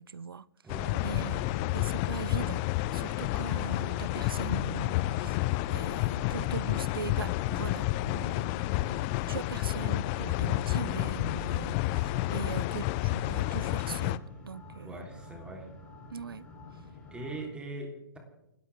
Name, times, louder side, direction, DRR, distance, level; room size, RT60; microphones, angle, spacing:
voice 1, 0.0-0.5 1.0-2.7 2.9-5.4 5.7-9.0 9.3-15.0 16.1-16.5, right 6 dB, 75° right, 0.5 m, -40 dB
voice 2, 0.6-1.4 14.8-15.7 17.1-18.2, right 2 dB, 10° right, 3.4 m, -41 dB
sound 1, 0.7-14.2, left 17 dB, 30° left, 0.5 m, -30 dB
sound 2, 1.3-17.3, left 3 dB, 50° left, 2.3 m, -53 dB
sound 3, 1.6-17.4, left 2 dB, 10° left, 3.2 m, -51 dB
29.0 x 13.5 x 3.5 m
figure-of-eight pair, 120°, 12 cm